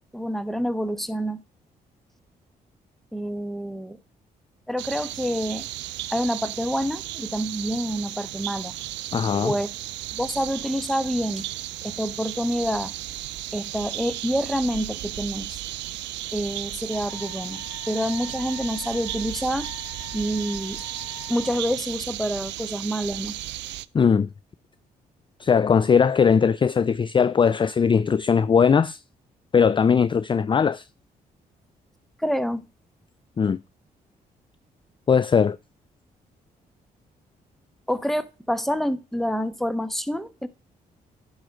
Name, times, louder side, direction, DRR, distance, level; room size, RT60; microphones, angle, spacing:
voice 1, 0.1-1.4 3.1-4.0 4.7-5.7 6.1-8.7 9.4-9.7 10.1-11.5 11.8-12.9 13.5-15.6 16.3-19.7 20.1-20.8 21.3-23.3 32.2-32.7 37.9-40.5, equal, ahead, 1.1 m, -27 dB
sound 1, 4.8-23.9, right 15 dB, 75° right, 0.4 m, -35 dB
voice 2, 9.1-9.6 23.9-24.3 25.4-29.0 29.5-30.9 33.4-33.6 35.1-35.6, left 6 dB, 25° left, 0.4 m, -19 dB
Wind instrument woodwind instrument, 16.9-21.8, left 10 dB, 45° left, 0.9 m, -44 dB
10.5 x 4.0 x 6.1 m
supercardioid pair, 50°, 18 cm